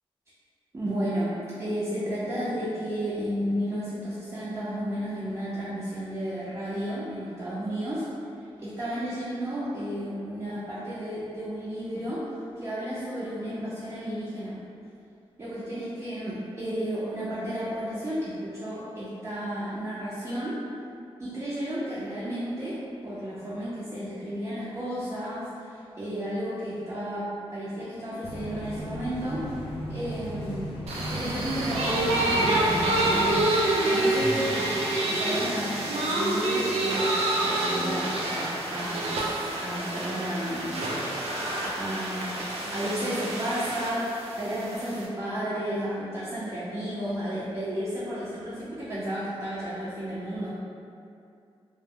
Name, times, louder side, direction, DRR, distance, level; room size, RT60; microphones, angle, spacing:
voice 1, 0.7-1.3 1.6-8.1 8.6-12.3 12.6-14.6 15.4-20.6 21.2-29.5 29.9-30.7 31.1-34.4 34.8-39.2 39.6-40.8 41.7-50.6, equal, 30° right, -10 dB, 0.5 m, -32 dB
sound 1, 28.2-33.4, equal, 75° left, 0.6 m, -36 dB
sound 2, 30.9-45.1, right 1 dB, 90° right, 0.4 m, -27 dB
2.0 x 2.0 x 3.5 m, 2.6 s
wide cardioid pair, 130°, 10 cm